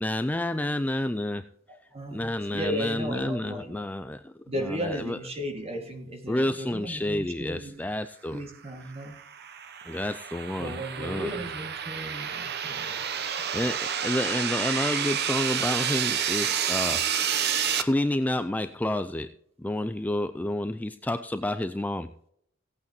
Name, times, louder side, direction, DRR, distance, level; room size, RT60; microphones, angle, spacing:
voice 1, 0.0-1.4 2.1-4.3 4.6-5.2 6.3-8.4 9.8-11.3 13.2-17.4 17.8-19.3 19.6-22.1, left 1 dB, 10° left, 10 dB, 0.4 m, -30 dB
voice 2, 1.7-3.9 4.5-7.7 8.3-9.2 10.6-13.5, equal, 30° right, 4 dB, 2.2 m, -35 dB
sound 1, 8.9-17.8, right 8 dB, 55° right, 0.8 m, -29 dB
17.0 x 8.6 x 3.0 m, 0.69 s
head